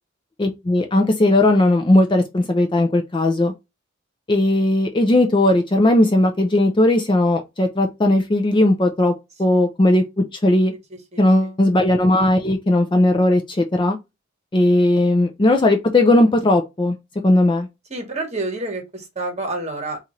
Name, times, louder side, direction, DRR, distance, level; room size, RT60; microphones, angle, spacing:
voice 1, 0.4-3.5 4.3-9.1 9.4-10.7 11.2-14.0 14.5-17.0 17.2-17.7, left 1 dB, 25° left, 0.4 m, -17 dB
voice 2, 17.9-20.0, right 2 dB, 30° right, 1.1 m, -28 dB
4.2 x 2.5 x 3.0 m
head